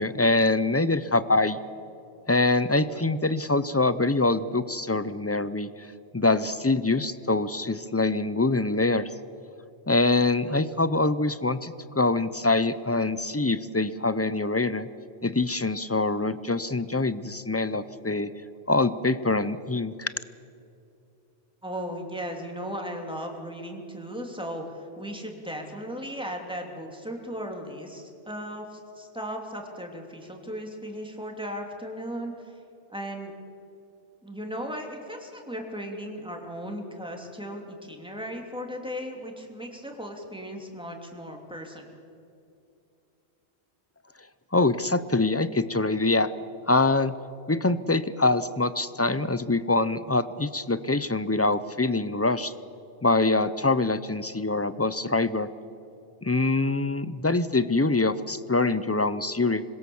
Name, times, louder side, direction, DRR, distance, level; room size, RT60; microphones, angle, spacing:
voice 1, 0.0-1.6 2.3-5.9 6.1-9.1 9.9-14.9 15.2-18.3 18.7-20.1 44.5-46.3 46.7-47.1 47.5-52.5 53.0-55.5 56.2-59.6, left 2 dB, 20° left, 15 dB, 0.4 m, -24 dB
voice 2, 21.6-32.6 32.9-33.3 34.2-41.9, equal, 5° right, 2 dB, 2.8 m, -36 dB
26.5 x 21.5 x 7.1 m, 2.6 s
omnidirectional pair, 1.2 m